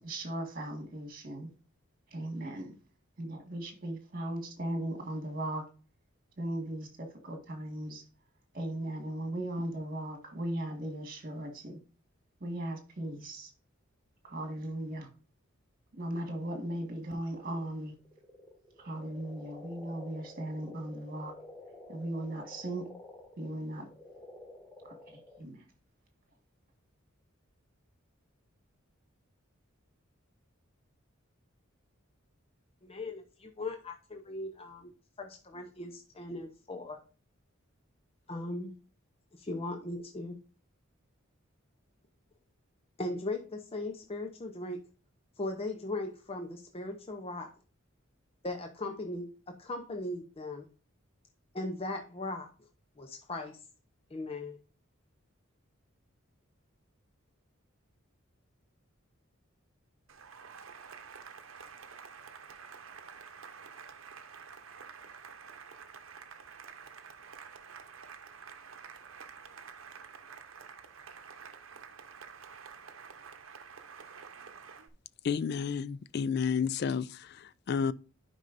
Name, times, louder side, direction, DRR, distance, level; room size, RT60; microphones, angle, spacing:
voice 1, 0.0-1.5 2.1-2.8 3.2-5.6 6.4-8.0 8.5-11.8 12.4-13.5 14.2-15.1 16.0-17.9 18.8-21.3 21.9-22.9 23.4-23.9 24.8-25.6, right 1 dB, 45° right, 1.8 m, -37 dB
sound 1, 17.3-25.4, left 2 dB, 5° left, 1.2 m, -51 dB
voice 2, 32.8-34.9 35.2-37.0 38.3-38.7 39.3-40.4 43.0-44.8 45.4-47.5 48.4-50.7 51.5-52.5 53.0-53.6 54.1-54.6, left 2 dB, 30° left, 0.7 m, -38 dB
Cheering / Applause, 60.1-74.9, right 6 dB, 75° right, 0.8 m, -49 dB
voice 3, 75.2-77.9, left 6 dB, 50° left, 0.3 m, -31 dB
11.0 x 5.3 x 2.6 m
head